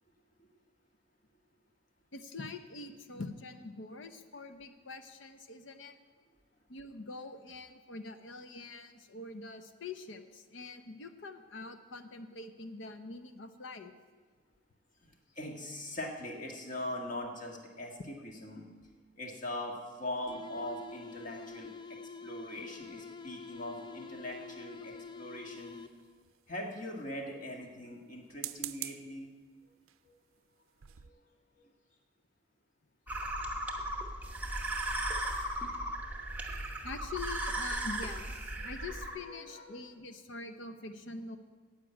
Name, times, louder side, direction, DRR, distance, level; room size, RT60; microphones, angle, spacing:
voice 1, 2.1-5.9 6.7-13.9 36.8-41.4, left 3 dB, 65° left, 8 dB, 0.7 m, -44 dB
voice 2, 15.0-18.6 19.2-25.8 26.5-29.3 30.0-30.1 31.0-31.1 38.6-38.9 39.2-39.9, left 1 dB, 40° left, 1 dB, 1.6 m, -42 dB
sound 1, 20.3-26.2, left 4 dB, 20° left, 0.3 m, -47 dB
sound 2, 25.6-26.4 28.2-29.2 29.9-30.1 30.5-30.6 30.8-31.1, right 15 dB, 90° right, 0.5 m, -44 dB
sound 3, 33.1-39.2, right 1 dB, 10° right, 0.9 m, -36 dB
10.0 x 7.4 x 9.0 m, 1.5 s
head